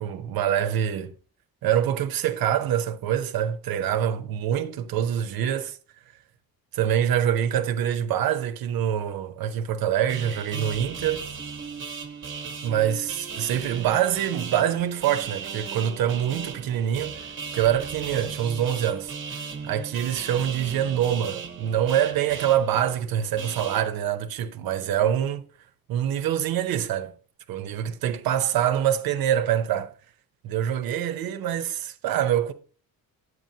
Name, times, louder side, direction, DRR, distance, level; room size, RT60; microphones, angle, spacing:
voice 1, 0.0-1.1 1.6-5.8 6.7-11.3 12.6-17.3 17.5-19.1 19.6-25.5 25.9-27.1 27.5-29.9 30.4-32.5, right 10 dB, 80° right, 0.7 m, -25 dB
sound 1, 10.1-23.8, right 5 dB, 35° right, 1.0 m, -37 dB
9.1 x 8.0 x 2.7 m
cardioid pair, 145°, 35 cm